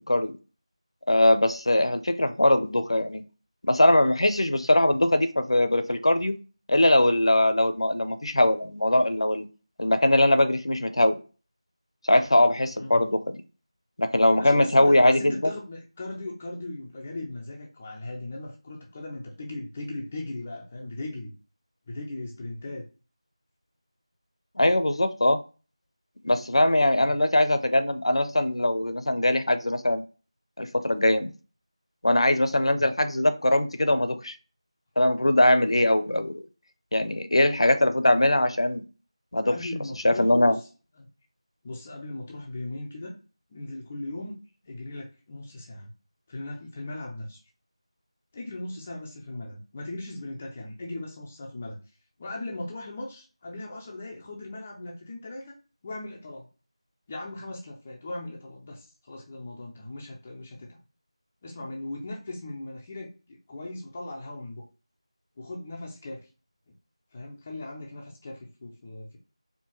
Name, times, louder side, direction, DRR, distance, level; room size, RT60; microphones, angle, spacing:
voice 1, 1.1-3.2 3.6-6.4 6.7-9.5 9.8-11.2 12.0-13.3 14.0-15.5 24.6-25.4 26.2-30.0 30.6-31.3 32.0-34.3 35.0-36.4 36.9-38.8 39.3-39.5 40.0-40.6, left 1 dB, 60° left, 10 dB, 0.6 m, -21 dB
voice 2, 14.4-21.3 21.9-22.8 26.8-27.1 32.7-32.9 39.4-40.7 41.0-41.1 41.6-43.1 43.5-44.4 44.7-45.9 46.3-47.4 48.3-51.8 52.2-55.5 55.8-56.5 57.1-60.7 61.4-64.6 65.4-66.2 67.1-69.2, left 2 dB, 10° left, -1 dB, 0.4 m, -38 dB
4.5 x 2.8 x 3.0 m, 0.34 s
figure-of-eight pair, 170°, 3 cm